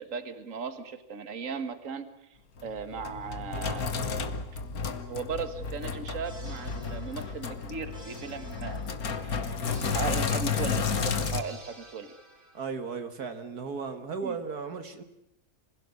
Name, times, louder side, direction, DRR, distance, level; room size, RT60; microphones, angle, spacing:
voice 1, 0.0-2.1 2.6-4.0 5.1-8.8 9.2-9.7 9.9-12.1 14.2-14.3, right 5 dB, 55° right, 11 dB, 2.1 m, -37 dB
Sink (filling or washing), 2.6-11.4, left 5 dB, 65° left, 2.0 m, -32 dB
sound 1, 6.2-13.1, right 1 dB, 30° right, 3.3 m, -52 dB
voice 2, 12.5-15.0, right 5 dB, 70° right, 8 dB, 2.2 m, -35 dB
26.0 x 16.5 x 9.7 m, 0.86 s
omnidirectional pair, 1.7 m